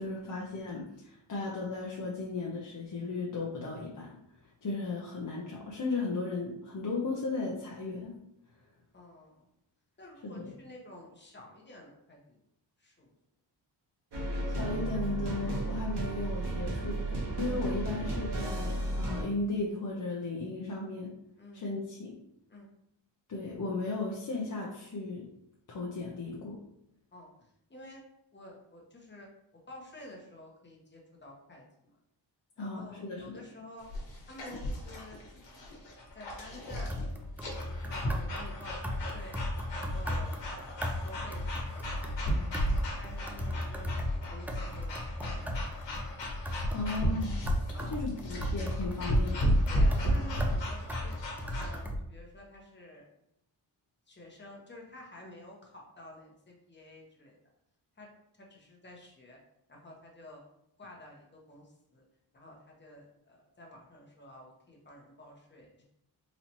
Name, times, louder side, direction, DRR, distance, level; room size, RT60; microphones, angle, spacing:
voice 1, 0.0-4.1 4.4-8.1 10.2-10.5 14.2-21.1 21.5-22.1 23.3-25.3 25.7-26.6 32.6-33.4 46.4-47.4 47.9-49.6, left 3 dB, 45° left, -4 dB, 0.8 m, -36 dB
voice 2, 8.9-9.5 10.0-12.4 12.8-13.1 21.4-21.6 22.5-22.7 27.1-28.0 28.3-29.3 29.7-31.9 32.6-33.9 34.3-35.8 36.1-37.0 37.6-39.4 39.7-42.5 43.0-46.0 47.7-48.0 49.7-51.2 51.5-53.1 54.1-57.4 58.0-58.1 58.3-59.4 59.7-60.4 60.8-62.0 62.3-65.8, left 1 dB, 25° left, -1 dB, 1.1 m, -50 dB
sound 1, 14.1-19.2, right 2 dB, 65° right, 1.4 m, -33 dB
sound 2, 33.8-51.8, equal, 75° left, 1.3 m, -34 dB
sound 3, 36.7-52.0, left 1 dB, 5° right, 0.4 m, -36 dB
4.1 x 2.9 x 2.9 m, 0.79 s
cardioid pair, 85°, 44 cm